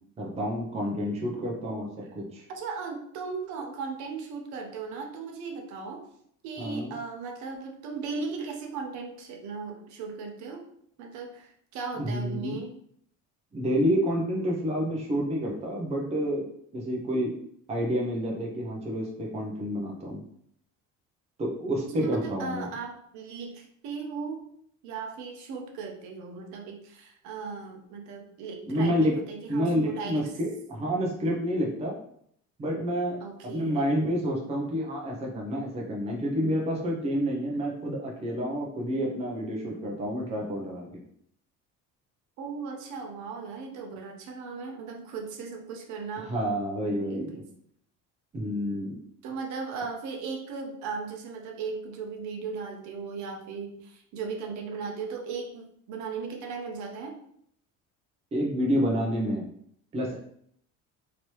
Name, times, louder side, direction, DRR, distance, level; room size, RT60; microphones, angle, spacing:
voice 1, 0.2-1.9 2.1-2.4 6.6-6.9 11.9-12.6 13.5-16.5 16.7-17.3 17.7-20.2 21.4-22.7 28.7-29.1 29.5-31.9 32.6-33.2 33.4-41.0 46.2-47.3 48.3-49.0 58.3-59.4 59.9-60.2, equal, 20° right, -1 dB, 0.6 m, -29 dB
voice 2, 2.5-6.1 6.4-10.6 11.0-12.7 21.8-24.4 24.8-30.3 33.2-34.0 42.4-46.3 46.9-47.4 49.2-57.2, right 5 dB, 65° right, 2 dB, 0.7 m, -37 dB
3.1 x 2.8 x 3.0 m, 0.66 s
cardioid pair, 170°, 31 cm